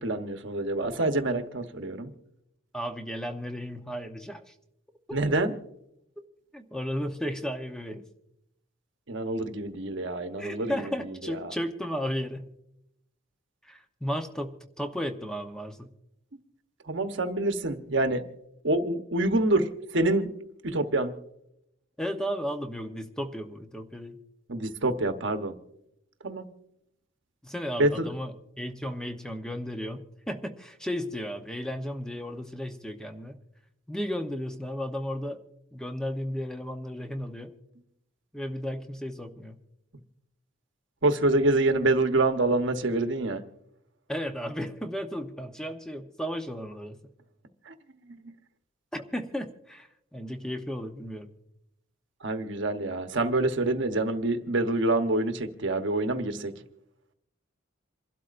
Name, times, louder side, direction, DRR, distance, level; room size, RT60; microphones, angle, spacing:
voice 1, 0.0-2.1 5.1-5.5 9.1-10.7 16.9-18.2 18.6-19.7 19.9-20.3 20.6-21.1 24.5-25.5 26.2-26.5 27.8-28.1 41.0-43.4 47.7-47.8 52.2-56.5, right 2 dB, 60° right, 7 dB, 1.1 m, -26 dB
voice 2, 2.7-4.5 5.1-5.2 6.5-8.0 10.4-12.5 13.6-15.9 22.0-24.2 27.4-33.4 33.9-35.4 35.7-37.5 38.3-39.6 44.1-47.0 48.9-51.3, equal, 5° left, 5 dB, 0.8 m, -34 dB
27.5 x 12.0 x 2.6 m, 0.81 s
head